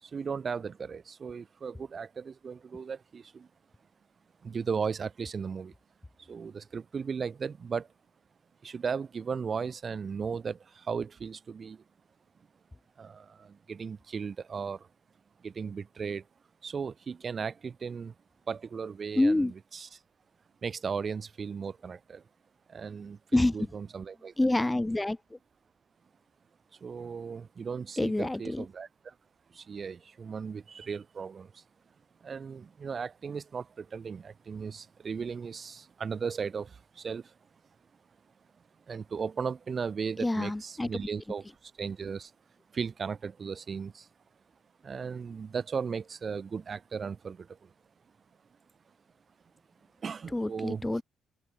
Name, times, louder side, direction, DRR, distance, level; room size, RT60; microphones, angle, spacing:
voice 1, 0.0-3.5 4.4-5.7 6.2-7.9 8.6-11.8 13.0-14.9 15.4-16.3 16.6-18.1 18.5-20.0 20.6-22.2 22.7-24.3 26.8-29.1 29.5-31.6 32.2-37.3 38.9-42.3 42.7-44.1 44.8-47.7 50.0-51.0, right 6 dB, 40° right, 1.4 m, -36 dB
voice 2, 19.2-19.5 23.3-23.5 24.4-25.2 28.0-28.6 40.2-40.9 50.3-51.0, left 2 dB, 10° left, 0.9 m, -27 dB
open air
cardioid pair, 90°, 0 cm